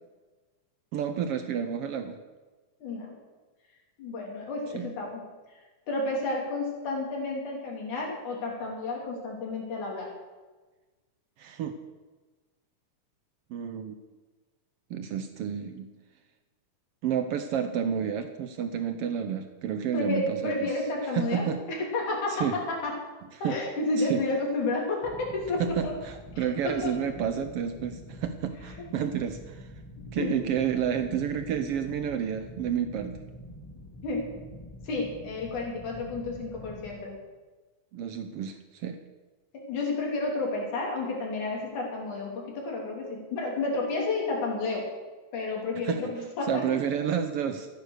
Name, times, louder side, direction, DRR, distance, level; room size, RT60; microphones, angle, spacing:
voice 1, 0.9-2.2 4.7-4.9 11.4-11.8 13.5-13.9 14.9-15.9 17.0-20.7 21.1-21.6 22.3-22.6 23.3-23.6 24.0-24.2 25.6-29.7 30.0-33.2 37.9-39.0 45.8-46.1 46.5-47.7, right 8 dB, 85° right, 8 dB, 1.3 m, -30 dB
voice 2, 2.8-3.2 4.0-5.2 5.9-10.2 19.9-23.0 23.4-25.9 26.4-27.0 30.2-30.4 34.0-34.3 34.8-37.2 39.5-44.9 45.3-46.8, left 2 dB, 70° left, -1 dB, 4.5 m, -31 dB
sound 1, 25.0-36.9, left 1 dB, 15° left, 0.9 m, -46 dB
14.0 x 9.8 x 6.6 m, 1.3 s
omnidirectional pair, 3.6 m